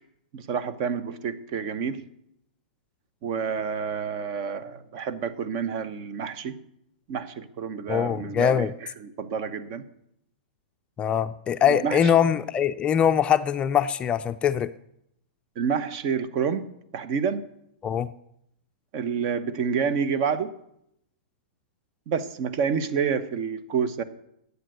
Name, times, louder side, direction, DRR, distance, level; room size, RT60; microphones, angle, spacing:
voice 1, 0.3-2.0 3.2-6.6 7.1-9.9 11.7-12.1 15.6-17.4 18.9-20.5 22.1-24.0, right 6 dB, 45° right, 14 dB, 0.9 m, -29 dB
voice 2, 7.9-8.7 11.0-14.7 17.8-18.1, left 8 dB, 20° left, 10 dB, 0.4 m, -22 dB
12.0 x 8.2 x 6.6 m, 0.78 s
hypercardioid pair, 130°, 5 cm